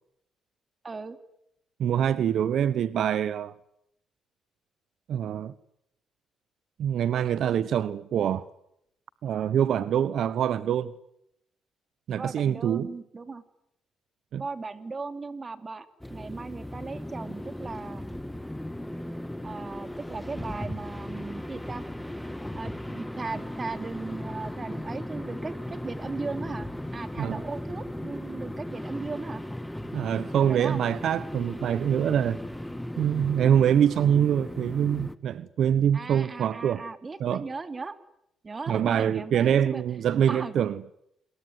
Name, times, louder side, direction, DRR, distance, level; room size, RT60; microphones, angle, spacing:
voice 1, 0.8-1.2 12.1-13.4 14.3-18.0 19.4-21.8 22.5-29.4 30.4-30.8 35.9-38.0 38.4-39.8 40.3-40.5, right 4 dB, 30° right, 3.0 m, -37 dB
voice 2, 1.8-3.5 5.1-5.5 6.8-8.5 9.2-10.9 12.1-12.9 14.3-14.4 27.2-27.4 29.9-32.4 33.0-36.8 37.2-37.4 38.7-40.8, right 9 dB, 70° right, 1.0 m, -25 dB
sound 1, 16.0-35.2, left 1 dB, 5° left, 1.8 m, -37 dB
28.0 x 22.0 x 9.5 m
cardioid pair, 90°, 0 cm